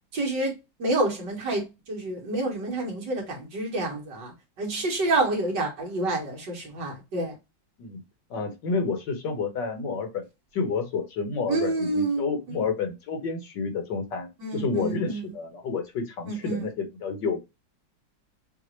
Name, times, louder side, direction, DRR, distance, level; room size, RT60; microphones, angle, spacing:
voice 1, 0.1-0.5 0.8-7.3 11.5-12.6 14.4-15.2 16.3-16.7, right 2 dB, 75° right, 2.3 m, -28 dB
voice 2, 8.3-10.2 10.5-17.4, left 4 dB, 75° left, 1.8 m, -30 dB
6.3 x 2.5 x 3.1 m
omnidirectional pair, 2.0 m